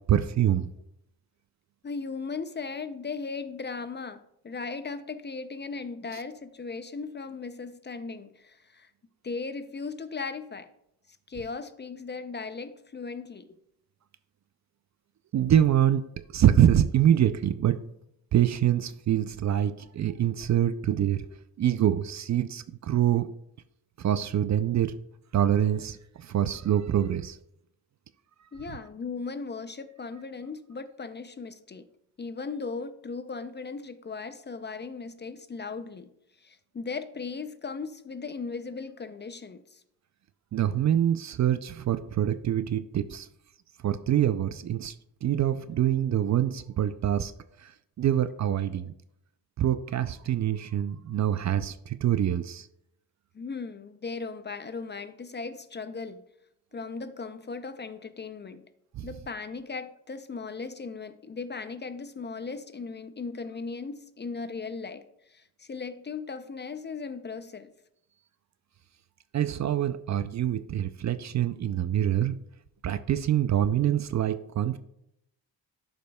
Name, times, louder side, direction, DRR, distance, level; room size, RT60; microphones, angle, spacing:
voice 1, 0.1-0.7 15.3-16.0 16.3-17.8 18.3-21.2 21.6-23.3 24.0-24.9 25.3-26.0 26.3-27.4 40.5-43.3 43.8-44.9 45.2-47.3 48.0-48.9 49.6-52.7 59.0-59.1 69.3-72.4 72.8-74.8, right 10 dB, 45° right, 0.4 m, -25 dB
voice 2, 1.8-8.9 9.2-10.7 11.3-13.5 28.5-31.9 32.2-36.1 36.4-39.8 53.3-56.2 56.7-58.7 59.0-67.7, left 4 dB, 25° left, 0.4 m, -37 dB
11.5 x 5.3 x 2.2 m
cardioid pair, 75°, 41 cm